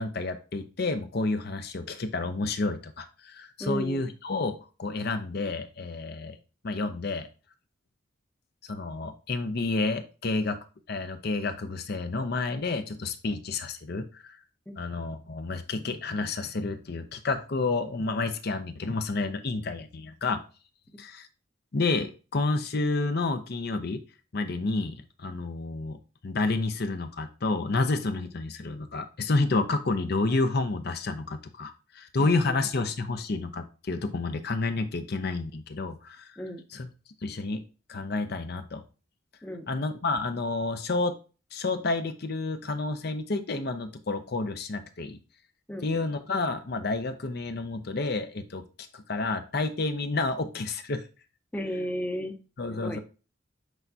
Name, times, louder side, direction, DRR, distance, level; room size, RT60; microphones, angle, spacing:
voice 1, 0.0-6.4 6.6-7.3 8.6-10.6 10.9-14.4 14.8-20.4 21.0-21.3 21.7-24.0 24.3-26.0 26.2-36.3 36.7-36.9 37.2-37.6 37.9-38.8 39.7-41.1 41.5-45.2 45.8-48.6 48.9-51.0 52.6-53.0, left 3 dB, 50° left, 8 dB, 0.6 m, -30 dB
voice 2, 3.6-4.0 28.1-28.3 32.2-32.9 36.4-36.6 39.4-39.7 45.7-46.1 51.5-52.4 52.7-53.0, equal, 10° left, 5 dB, 0.7 m, -35 dB
8.0 x 4.5 x 2.7 m, 0.33 s
head